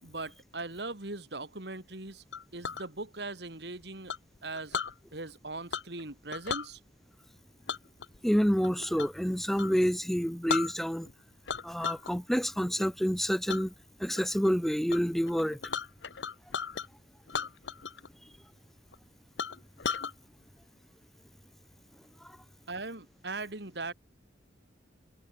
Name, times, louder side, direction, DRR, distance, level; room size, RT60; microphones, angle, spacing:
voice 1, 0.0-2.2 2.5-4.1 4.4-4.8 5.1-6.8 22.7-23.9, right 2 dB, 65° right, 2.7 m, -39 dB
Chink clink, 2.3-2.9 4.1-4.9 5.7-6.0 6.3-6.7 7.7-9.2 9.5-9.7 10.2-10.3 10.5-11.1 11.5-12.1 12.5-12.9 13.5-13.6 14.1-14.5 14.9-15.0 15.3-16.9 17.3-18.1 18.3-18.4 18.9-19.0 19.4-20.1, left 6 dB, 75° left, 0.9 m, -35 dB
voice 2, 8.2-11.1 11.6-13.7 14.0-15.6, equal, ahead, 0.4 m, -28 dB
head